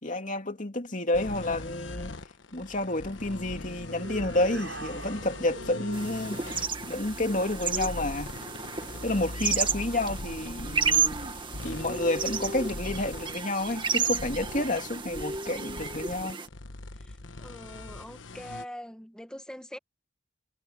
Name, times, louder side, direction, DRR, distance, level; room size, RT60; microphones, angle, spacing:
voice 1, 0.0-2.1 2.5-8.3 9.0-11.2 11.6-16.4, left 1 dB, 45° left, 2.8 m, -30 dB
sound 1, 1.1-18.7, left 2 dB, 80° left, 1.3 m, -41 dB
sound 2, 3.9-6.2, right 2 dB, 85° right, 6.9 m, -42 dB
sound 3, 5.9-16.5, right 5 dB, 25° right, 2.0 m, -32 dB
voice 2, 17.0-19.8, equal, 5° left, 1.9 m, -43 dB
head